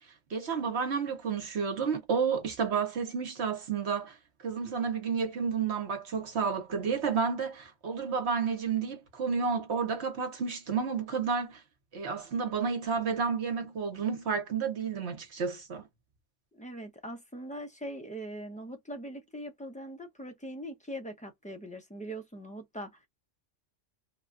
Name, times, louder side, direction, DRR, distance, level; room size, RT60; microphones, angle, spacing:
voice 1, 0.3-4.2 4.4-11.6 11.9-15.8, right 6 dB, 65° right, 1.1 m, -31 dB
voice 2, 16.5-23.0, right 1 dB, 10° left, 0.5 m, -41 dB
3.0 x 2.3 x 2.5 m
omnidirectional pair, 1.2 m